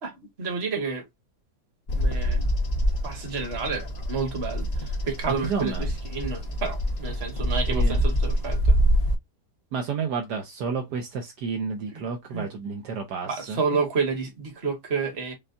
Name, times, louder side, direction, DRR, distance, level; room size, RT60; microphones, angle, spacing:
voice 1, 0.0-1.0 2.0-2.5 3.0-8.7 11.9-12.5 13.3-15.3, right 5 dB, 40° right, 1.5 m, -30 dB
Bird vocalization bird call bird song, 1.9-9.1, equal, 40° left, 0.5 m, -25 dB
voice 2, 5.3-5.9 7.7-8.0 9.7-13.6, right 5 dB, 70° right, 1.3 m, -31 dB
5.5 x 2.3 x 2.6 m
omnidirectional pair, 1.9 m